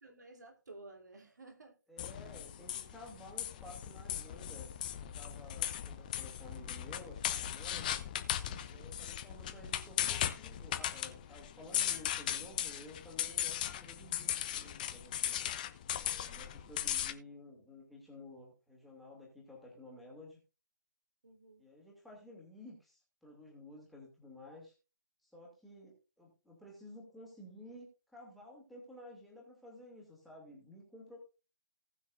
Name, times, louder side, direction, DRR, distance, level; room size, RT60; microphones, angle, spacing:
voice 1, 0.0-1.8 8.5-8.8 21.2-21.7, right 2 dB, 60° right, 2 dB, 3.1 m, -54 dB
voice 2, 1.9-7.9 8.7-15.4 16.0-20.4 21.6-24.7 25.2-31.2, left 1 dB, ahead, -2 dB, 2.4 m, -53 dB
sound 1, 2.0-17.1, left 10 dB, 25° left, 0.6 m, -38 dB
18.5 x 6.4 x 2.6 m, 0.32 s
figure-of-eight pair, 140°, 11 cm